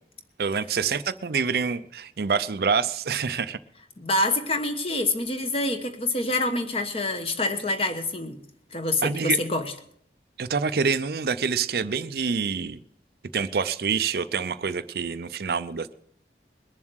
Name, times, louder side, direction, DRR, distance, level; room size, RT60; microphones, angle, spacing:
voice 1, 0.4-3.6 9.0-9.4 10.4-12.8 13.3-15.9, right 5 dB, 60° right, 13 dB, 0.5 m, -26 dB
voice 2, 4.0-8.4 8.7-9.7, left 2 dB, 35° left, 8 dB, 1.2 m, -26 dB
21.5 x 7.3 x 6.3 m, 0.67 s
head